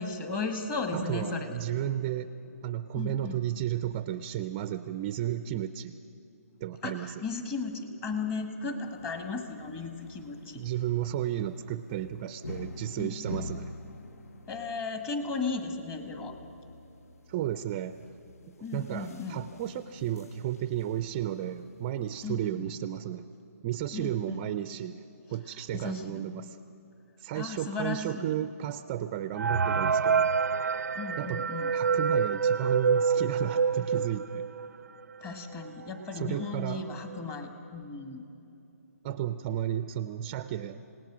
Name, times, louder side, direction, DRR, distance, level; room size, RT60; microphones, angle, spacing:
voice 1, 0.0-1.6 3.0-3.5 6.8-10.6 13.0-13.7 14.5-16.4 18.6-19.5 22.2-22.7 23.9-24.4 25.7-26.2 27.3-28.4 30.9-31.7 35.2-38.2, left 4 dB, 20° left, 6 dB, 1.7 m, -36 dB
voice 2, 0.9-2.3 2.6-6.0 6.6-7.2 10.5-13.7 17.3-18.1 18.5-23.3 23.6-25.0 25.3-26.6 27.2-30.3 31.2-31.4 31.7-34.4 36.1-36.8 39.0-40.8, right 11 dB, 25° right, 12 dB, 0.5 m, -33 dB
sound 1, 8.8-22.5, left 2 dB, 65° left, 1.1 m, -47 dB
sound 2, 29.4-34.8 35.3-35.4 35.6-35.7 36.4-36.5 36.9-37.2, right 5 dB, 85° right, 0.4 m, -27 dB
27.0 x 18.5 x 6.2 m, 3.0 s
hypercardioid pair, 155°, 9 cm